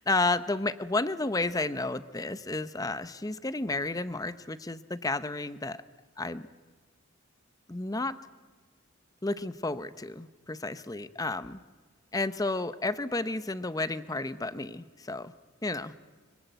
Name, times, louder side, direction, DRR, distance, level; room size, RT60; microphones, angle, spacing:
voice 1, 0.1-5.8 6.2-6.5 7.7-8.2 9.2-11.6 12.1-15.3 15.6-15.9, left 2 dB, 20° left, 14 dB, 0.8 m, -31 dB
24.0 x 23.5 x 9.2 m, 1.4 s
head